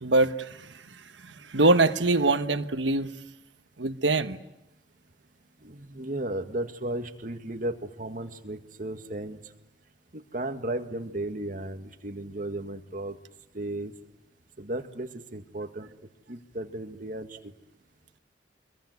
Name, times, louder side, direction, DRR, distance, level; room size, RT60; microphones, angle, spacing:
voice 1, 0.0-0.6 1.3-3.1 3.8-4.4, right 2 dB, 90° right, 9 dB, 1.3 m, -23 dB
voice 2, 5.6-9.4 10.1-13.2 13.5-13.9 14.6-15.9 16.3-17.4, right 1 dB, 45° right, 7 dB, 1.9 m, -35 dB
26.0 x 22.0 x 9.5 m, 0.91 s
head